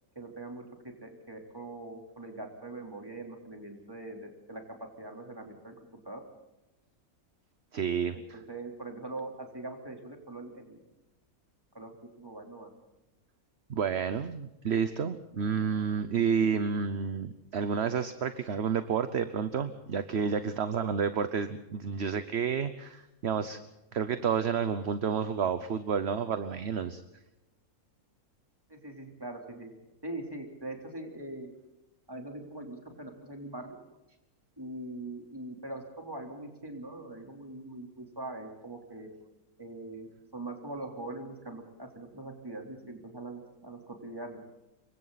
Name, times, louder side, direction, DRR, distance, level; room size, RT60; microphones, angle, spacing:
voice 1, 0.2-4.6 5.0-5.8 6.1-6.2 8.3-10.8 11.8-12.7 28.7-29.7 30.0-31.5 32.1-33.8 34.6-39.1 39.6-44.4, right 2 dB, 15° right, 2 dB, 3.6 m, -42 dB
voice 2, 7.7-8.4 13.7-23.6 23.9-27.0, right 6 dB, 50° right, 11 dB, 1.1 m, -30 dB
27.0 x 23.5 x 4.1 m, 0.97 s
omnidirectional pair, 1.5 m